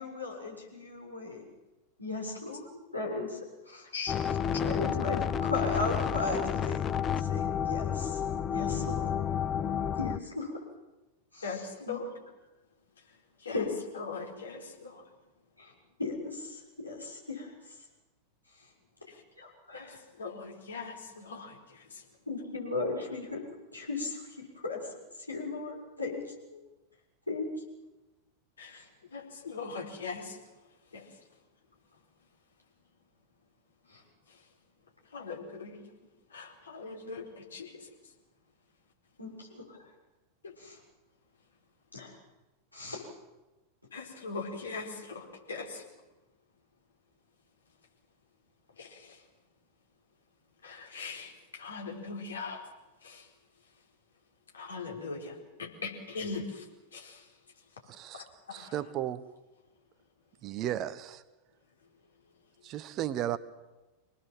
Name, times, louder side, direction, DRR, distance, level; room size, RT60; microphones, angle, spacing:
voice 1, 0.0-1.4 2.0-3.4 3.7-3.9 4.6-8.2 8.5-9.0 10.0-10.5 11.3-12.0 13.5-13.8 15.6-15.7 16.0-17.5 19.4-20.0 22.3-23.4 23.7-24.8 25.3-26.2 27.3-27.5 28.7-28.9 33.9-34.0 39.2-39.8 40.6-40.8 41.9-42.1 42.7-43.0, left 3 dB, 85° left, 7.0 m, -36 dB
sound 1, 4.1-10.2, left 8 dB, 25° left, 0.7 m, -30 dB
voice 2, 11.4-12.1 13.4-13.6 14.0-15.0 19.7-21.6 28.6-28.8 29.1-30.4 30.9-31.0 35.1-35.8 36.3-37.7 40.4-40.5 43.9-45.8 48.8-49.0 50.6-51.3 51.6-52.6 53.0-53.2 54.5-55.3 55.6-56.6 56.9-57.2 58.1-58.7, left 4 dB, 70° left, 4.6 m, -40 dB
voice 3, 57.9-58.3 58.5-59.3 60.4-61.2 62.6-63.4, right 12 dB, 35° right, 1.1 m, -34 dB
25.5 x 19.5 x 7.6 m
figure-of-eight pair, 90°, 0 cm